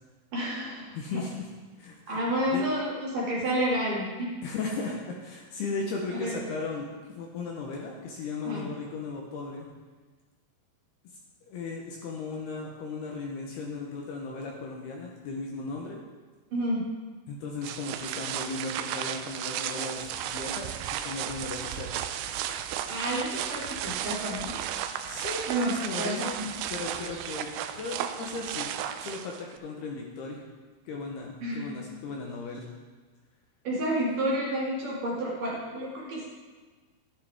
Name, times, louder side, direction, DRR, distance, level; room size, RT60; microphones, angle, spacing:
voice 1, 0.3-1.2 2.1-4.3 6.1-6.3 8.4-8.7 16.5-16.9 22.9-24.6 25.5-25.7 26.0-26.5 31.4-31.8 33.6-36.3, right 1 dB, 50° right, -6 dB, 3.3 m, -30 dB
voice 2, 1.0-1.5 1.8-2.2 2.5-2.6 4.4-9.7 11.5-16.0 17.3-21.9 22.3-22.4 25.0-26.4 26.7-27.5 27.8-28.7 29.0-30.4 30.9-32.7, left 4 dB, 75° left, 0 dB, 2.5 m, -36 dB
sound 1, 17.6-29.6, right 10 dB, 85° right, 2.5 m, -34 dB
12.5 x 11.0 x 3.5 m, 1.4 s
omnidirectional pair, 5.6 m